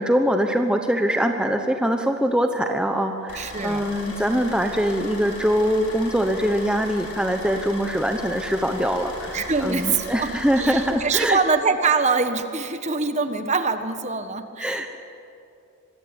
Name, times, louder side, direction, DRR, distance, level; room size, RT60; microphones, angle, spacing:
voice 1, 0.0-11.4 14.6-14.9, equal, 5° right, 5 dB, 1.0 m, -23 dB
sound 1, 3.3-10.9, left 1 dB, 85° left, 7.2 m, -37 dB
voice 2, 3.3-3.9 9.3-10.3 10.6-14.9, right 4 dB, 30° right, 9 dB, 1.3 m, -24 dB
26.0 x 22.0 x 9.0 m, 2.7 s
head